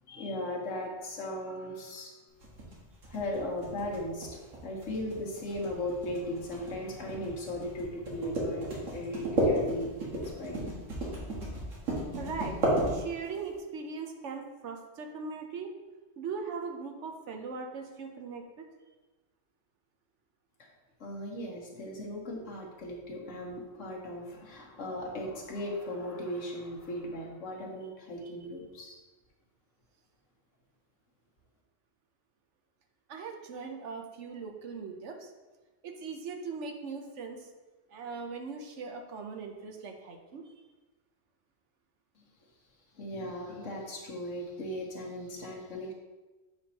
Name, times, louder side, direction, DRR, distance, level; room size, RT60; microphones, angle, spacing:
voice 1, 0.1-2.1 3.1-4.3 4.6-10.7 20.6-20.7 21.0-29.0 43.0-45.9, left 1 dB, 80° left, -1 dB, 1.5 m, -37 dB
sound 1, 2.4-13.4, right 1 dB, 85° right, 1.9 m, -32 dB
voice 2, 12.2-12.6 12.9-15.7 16.2-18.6 28.2-28.3 33.1-35.3 35.8-37.5 37.9-40.5, right 5 dB, 70° right, 4 dB, 1.1 m, -40 dB
7.8 x 5.3 x 2.9 m, 1.2 s
omnidirectional pair, 1.3 m